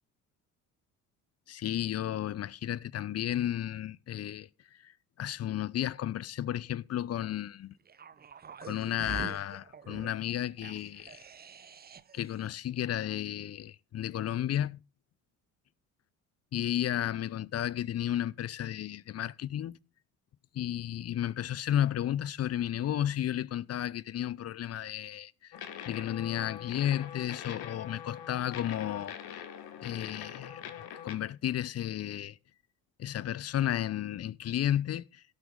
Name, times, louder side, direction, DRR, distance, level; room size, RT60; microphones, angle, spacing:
voice 1, 1.5-4.5 4.8-4.9 5.2-7.7 8.6-11.2 12.1-14.8 16.5-19.8 20.5-29.5 29.8-30.7 31.0-32.4 33.0-35.2, left 11 dB, 35° left, 0.6 m, -33 dB
sound 1, 7.9-12.3 12.5-12.6, right 6 dB, 20° right, 0.6 m, -46 dB
sound 2, 25.5-31.1, left 9 dB, 60° left, 1.7 m, -43 dB
17.5 x 6.3 x 3.8 m
hypercardioid pair, 55°, 43 cm